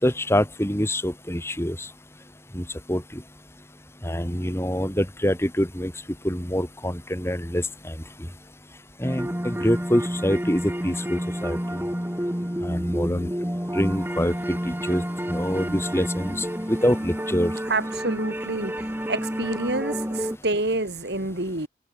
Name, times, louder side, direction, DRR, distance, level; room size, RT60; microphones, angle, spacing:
voice 1, 0.0-1.9 2.5-3.2 4.0-5.9 6.2-7.9 9.0-11.8 12.6-13.3 13.7-15.0 15.3-17.5, equal, 15° left, 5.7 m, -25 dB
sound 1, 9.0-20.4, equal, 10° right, 3.4 m, -29 dB
voice 2, 17.7-21.7, right 2 dB, 70° right, 3.9 m, -28 dB
head